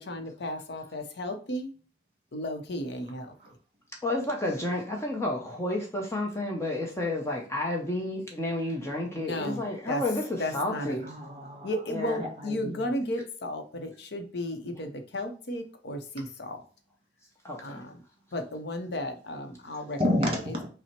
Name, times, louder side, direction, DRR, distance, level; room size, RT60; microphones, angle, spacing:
voice 1, 0.0-1.7 2.3-3.3 9.2-10.0 10.4-11.0 11.6-16.6 17.6-18.0 18.3-20.0, left 1 dB, 65° left, 6 dB, 0.7 m, -34 dB
voice 2, 4.0-11.1 11.9-12.2 17.4-17.8, left 1 dB, 15° left, 0 dB, 0.7 m, -31 dB
voice 3, 11.0-11.7 12.2-12.9 20.0-20.7, left 1 dB, 35° right, 1 dB, 1.6 m, -30 dB
5.6 x 2.1 x 4.3 m, 0.39 s
head